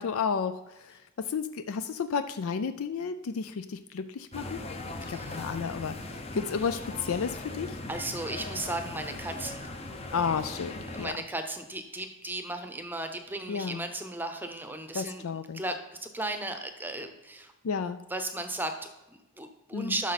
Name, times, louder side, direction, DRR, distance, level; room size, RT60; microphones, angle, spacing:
voice 1, 0.0-4.6 5.1-7.8 10.1-11.1 13.5-13.8 14.9-15.6 17.6-18.0 19.7-20.0, left 6 dB, 75° left, 10 dB, 0.4 m, -32 dB
sound 1, 4.3-11.1, left 2 dB, 30° left, 0.7 m, -39 dB
voice 2, 5.1-5.5 7.9-9.7 10.9-15.2 15.5-15.7 16.0-17.5 18.1-20.1, right 2 dB, 10° right, 7 dB, 0.7 m, -35 dB
12.0 x 6.2 x 4.1 m, 1.0 s
head